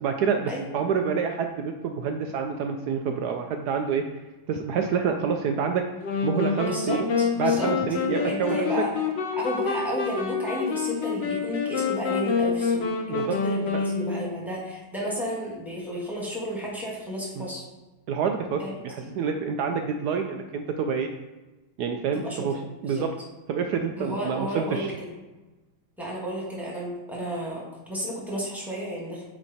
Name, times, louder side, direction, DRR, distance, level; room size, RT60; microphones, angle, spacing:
voice 1, 0.0-4.1 4.5-5.9 6.2-7.1 7.4-8.6 13.1-13.4 17.4-17.5 18.1-21.1 21.8-22.6 22.8-23.1 23.5-24.9, right 6 dB, 75° right, 5 dB, 0.9 m, -27 dB
sound 1, 6.0-14.5, left 6 dB, 80° left, 0.5 m, -27 dB
voice 2, 6.6-7.7 8.0-8.9 9.3-13.2 13.4-17.7 18.6-18.7 22.1-23.0 24.0-24.9 26.0-29.2, equal, ahead, -5 dB, 1.6 m, -32 dB
8.8 x 3.3 x 4.2 m, 1.1 s
omnidirectional pair, 2.1 m